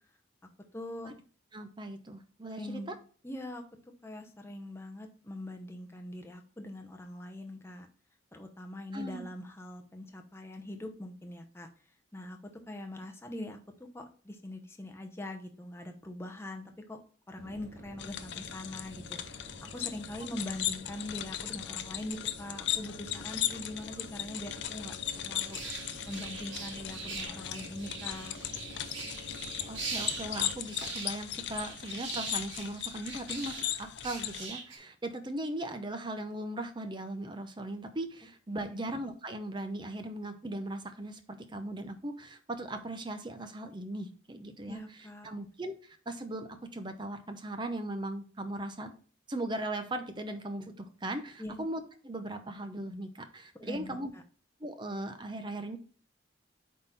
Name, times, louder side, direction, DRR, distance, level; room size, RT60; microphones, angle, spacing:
voice 1, 0.7-1.1 2.6-2.9 3.2-3.6 4.0-7.9 8.3-11.7 12.1-12.4 12.7-13.6 13.9-17.0 17.3-24.9 25.2-25.6 26.1-28.4 38.5-38.9 44.7-45.3 51.4-51.7 53.6-54.2, left 1 dB, 10° left, 4 dB, 0.8 m, -42 dB
voice 2, 1.5-2.9 8.9-9.2 29.7-44.8 45.2-45.7 46.1-48.9 49.3-54.1 54.6-55.8, right 1 dB, 25° right, 7 dB, 0.7 m, -38 dB
sound 1, 17.4-30.5, equal, 50° right, 1.5 m, -49 dB
sound 2, 18.0-34.5, left 11 dB, 60° left, 0.5 m, -38 dB
sound 3, 25.4-33.7 34.0-34.8, right 4 dB, 70° right, 1.8 m, -42 dB
8.5 x 3.7 x 4.0 m, 0.41 s
head